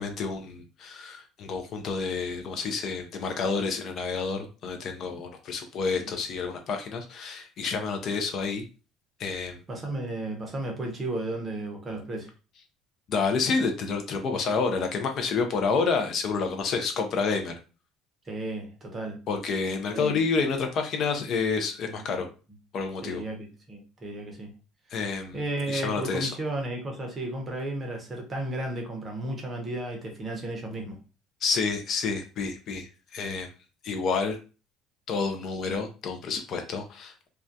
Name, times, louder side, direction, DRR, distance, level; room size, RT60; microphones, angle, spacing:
voice 1, 0.0-8.6 9.2-9.6 13.1-17.6 19.3-22.3 22.7-23.2 24.9-25.4 25.7-26.3 31.4-33.5 33.8-34.4 35.1-37.3, left 4 dB, 45° left, 5 dB, 0.4 m, -29 dB
voice 2, 9.7-12.3 18.2-19.2 19.9-20.2 21.9-22.0 23.0-24.5 25.3-31.0, right 1 dB, 20° right, 2 dB, 0.7 m, -33 dB
2.3 x 2.1 x 2.6 m, 0.33 s
cardioid pair, 145°, 0 cm